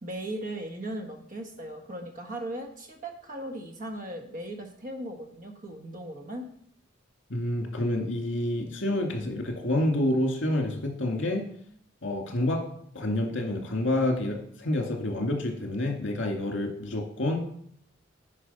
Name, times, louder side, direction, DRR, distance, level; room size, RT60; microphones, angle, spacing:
voice 1, 0.0-6.5, right 1 dB, 45° right, 3 dB, 1.5 m, -38 dB
voice 2, 7.3-11.4 12.0-12.6 12.9-17.5, left 1 dB, 70° left, 2 dB, 2.1 m, -28 dB
9.7 x 5.4 x 5.5 m, 0.65 s
head